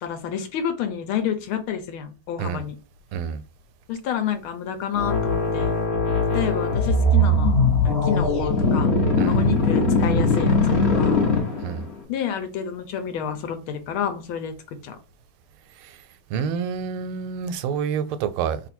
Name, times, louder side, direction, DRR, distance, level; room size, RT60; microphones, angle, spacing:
voice 1, 0.0-2.8 3.9-5.7 6.3-7.6 7.8-8.9 9.2-11.2 12.1-14.5 14.8-15.0, left 8 dB, 80° left, 1.6 m, -29 dB
sound 1, 5.0-11.9, left 2 dB, 40° left, 1.0 m, -20 dB
voice 2, 16.3-18.6, right 7 dB, 85° right, 1.5 m, -28 dB
3.4 x 2.5 x 4.2 m
omnidirectional pair, 2.3 m